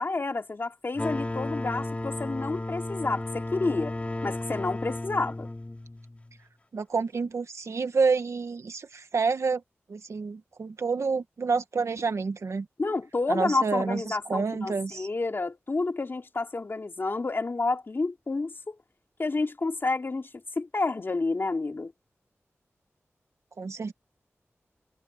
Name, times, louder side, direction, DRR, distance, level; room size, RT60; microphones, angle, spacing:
voice 1, 0.0-4.0 4.2-5.5 12.8-18.7 19.2-20.3 20.5-21.9, left 3 dB, 50° left, 3.2 m, -29 dB
sound 1, 0.9-6.4, left 2 dB, 25° left, 5.0 m, -34 dB
voice 2, 6.7-9.6 9.9-12.7 13.3-15.1 23.6-23.9, right 4 dB, 75° right, 1.8 m, -28 dB
wide cardioid pair, 90°, 5 cm